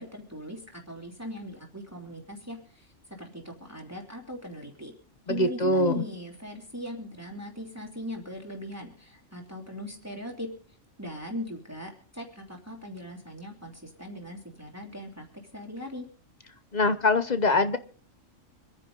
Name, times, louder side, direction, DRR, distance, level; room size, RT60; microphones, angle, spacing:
voice 1, 0.0-2.9 3.2-4.9 5.3-10.5 11.0-15.3 15.5-16.0, left 1 dB, 10° right, 0 dB, 2.9 m, -39 dB
voice 2, 5.3-6.0 16.7-17.8, left 2 dB, 40° left, 11 dB, 0.8 m, -23 dB
25.5 x 9.9 x 3.9 m, 0.44 s
omnidirectional pair, 1.4 m